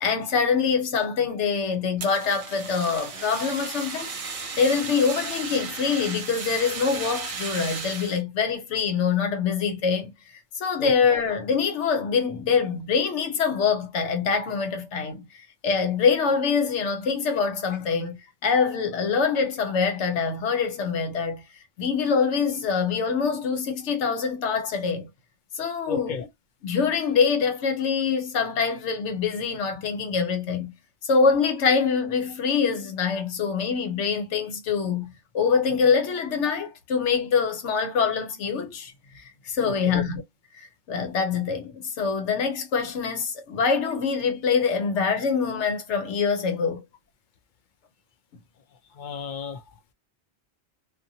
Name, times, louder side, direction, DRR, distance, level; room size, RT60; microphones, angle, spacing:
voice 1, 0.0-4.1 4.6-25.1 25.5-26.3 26.6-30.7 31.0-40.2 40.5-46.8, left 5 dB, 85° left, 1.0 m, -25 dB
Fire, 2.0-8.2, right 4 dB, 40° right, 0.5 m, -35 dB
voice 2, 25.9-26.2 39.6-39.9 49.0-49.6, left 6 dB, 55° left, 0.6 m, -33 dB
2.7 x 2.5 x 2.6 m
omnidirectional pair, 1.2 m